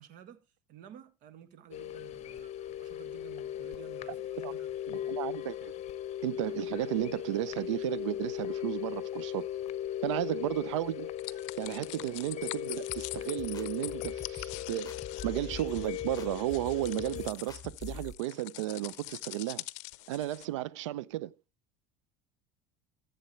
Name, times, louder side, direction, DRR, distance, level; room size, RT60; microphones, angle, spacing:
voice 1, 0.0-5.2, right 9 dB, 60° right, 1.8 m, -53 dB
sound 1, 1.7-17.3, left 11 dB, 45° left, 0.9 m, -38 dB
voice 2, 4.9-5.7 6.2-9.5 10.0-11.1 11.6-14.9 15.2-19.6 20.1-21.3, right 15 dB, 85° right, 0.5 m, -34 dB
sound 2, 11.2-20.5, left 21 dB, 75° left, 0.6 m, -44 dB
sound 3, 12.9-18.1, left 6 dB, 25° left, 1.2 m, -45 dB
15.0 x 8.0 x 3.1 m
supercardioid pair, 90°, 15 cm